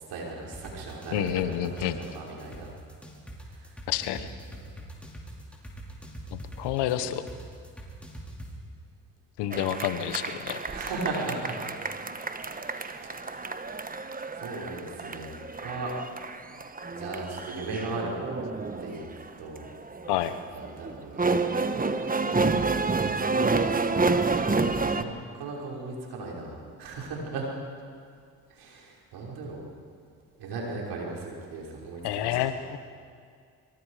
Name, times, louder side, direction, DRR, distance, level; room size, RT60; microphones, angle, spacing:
voice 1, 0.1-2.7 4.5-4.7 6.9-7.1 10.7-11.6 12.6-13.6 14.3-15.3 15.6-15.9 16.9-18.5 18.7-19.1 19.4-19.7 20.5-22.1 23.1-27.5 28.5-29.6 30.4-32.4, right 3 dB, 75° right, -3 dB, 5.8 m, -37 dB
sound 1, 0.5-8.5, equal, 5° left, 5.3 m, -42 dB
voice 2, 1.1-2.0 3.9-4.3 6.3-7.3 9.4-10.6 20.1-20.3 32.0-32.8, left 12 dB, 80° left, 11 dB, 1.2 m, -29 dB
sound 2, 9.5-25.0, right 3 dB, 20° right, 1.3 m, -29 dB
23.5 x 23.5 x 5.0 m, 2.2 s
hypercardioid pair, 55°, 40 cm